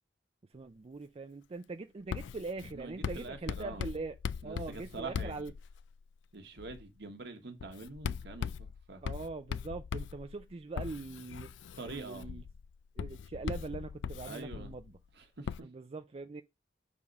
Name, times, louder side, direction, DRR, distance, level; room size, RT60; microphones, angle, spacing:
voice 1, 0.4-4.2 4.4-5.5 9.0-11.6 11.9-12.4 13.0-15.0 15.6-16.4, right 3 dB, 30° right, 0.4 m, -42 dB
Writing, 2.1-6.0 6.6-6.9 7.6-15.0 15.5-15.6, left 6 dB, 85° left, 0.3 m, -40 dB
voice 2, 2.7-3.9 4.4-5.5 6.3-9.0 11.8-12.3 14.3-14.7 15.1-15.6, right 3 dB, 65° right, 1.3 m, -45 dB
6.7 x 3.7 x 5.2 m
head